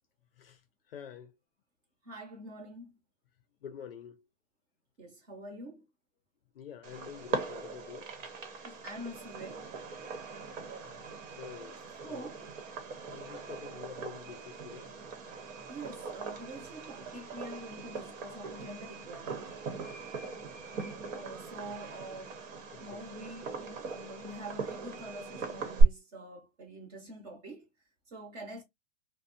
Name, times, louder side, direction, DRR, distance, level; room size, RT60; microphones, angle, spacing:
voice 1, 0.3-1.4 3.6-4.3 6.5-8.3 10.8-11.8 12.1-12.3 13.0-15.0 22.7-23.1, left 8 dB, 50° left, 0.4 m, -48 dB
voice 2, 2.0-3.0 5.0-5.8 8.6-9.7 12.0-12.4 15.7-19.5 21.1-22.3 22.8-27.7 28.1-28.6, right 1 dB, 30° right, 0.9 m, -45 dB
Fireworks, 6.8-25.8, right 3 dB, 75° right, 1.0 m, -38 dB
2.6 x 2.1 x 2.5 m
hypercardioid pair, 170°, 38 cm